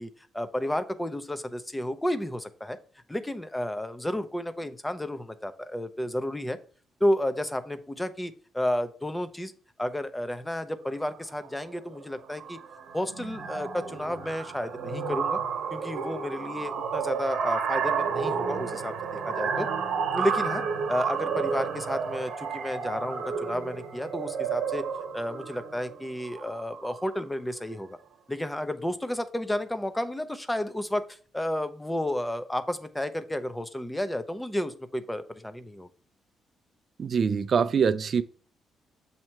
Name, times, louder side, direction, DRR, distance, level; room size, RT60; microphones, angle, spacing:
voice 1, 0.0-2.8 3.1-6.6 7.0-9.5 9.8-12.6 12.9-15.4 15.7-18.9 19.3-19.7 20.1-20.6 20.9-24.9 25.1-28.0 28.3-35.9, left 1 dB, 10° left, 0.6 m, -31 dB
sound 1, 11.2-11.5 11.8-12.0 12.3-27.2, right 6 dB, 75° right, 1.0 m, -31 dB
voice 2, 37.0-38.2, right 6 dB, 50° right, 0.4 m, -24 dB
7.5 x 2.9 x 4.5 m
cardioid pair, 90°, 0 cm